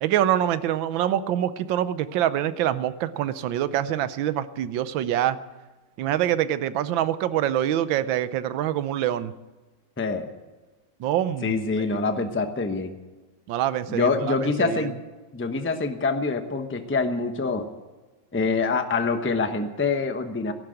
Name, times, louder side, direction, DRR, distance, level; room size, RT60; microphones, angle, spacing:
voice 1, 0.0-5.4 6.0-9.3 11.0-11.7 13.5-14.9, right 11 dB, 85° right, 13 dB, 1.5 m, -25 dB
voice 2, 10.0-10.3 11.4-12.9 13.9-14.9 15.3-17.7 18.3-20.5, left 4 dB, 10° left, 7 dB, 0.6 m, -25 dB
15.5 x 11.5 x 7.8 m, 1.2 s
omnidirectional pair, 2.1 m